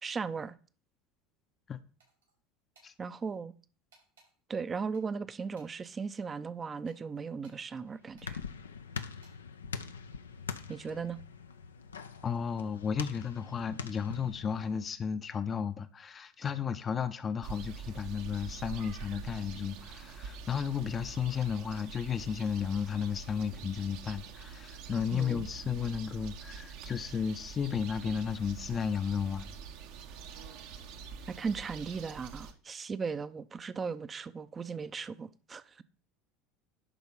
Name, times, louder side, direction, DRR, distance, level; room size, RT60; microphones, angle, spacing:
voice 1, 0.0-0.6 3.0-3.5 4.5-8.4 10.7-11.2 25.1-25.5 31.3-35.8, right 5 dB, 25° right, 0.6 m, -37 dB
sound 1, 2.0-2.3 2.7-2.9 3.9-4.3 4.9-6.0 6.9-7.6 8.2-8.3 8.9-9.3, right 3 dB, 85° right, 5.4 m, -64 dB
sound 2, 7.6-14.9, left 5 dB, 85° left, 0.6 m, -43 dB
voice 2, 12.2-29.5, left 7 dB, 30° left, 0.7 m, -33 dB
sound 3, 17.4-32.5, right 6 dB, 60° right, 1.1 m, -45 dB
11.0 x 3.9 x 5.5 m
hypercardioid pair, 75°, 0 cm